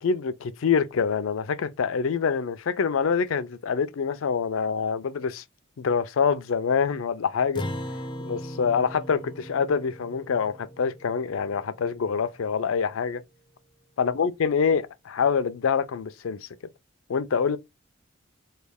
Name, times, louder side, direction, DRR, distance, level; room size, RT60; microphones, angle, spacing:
voice 1, 0.0-5.4 5.8-7.6 8.2-13.2 14.0-16.5 17.1-17.6, left 6 dB, 80° left, 0.4 m, -25 dB
Acoustic guitar, 7.6-12.2, equal, 25° left, 0.4 m, -38 dB
3.2 x 2.3 x 3.5 m
head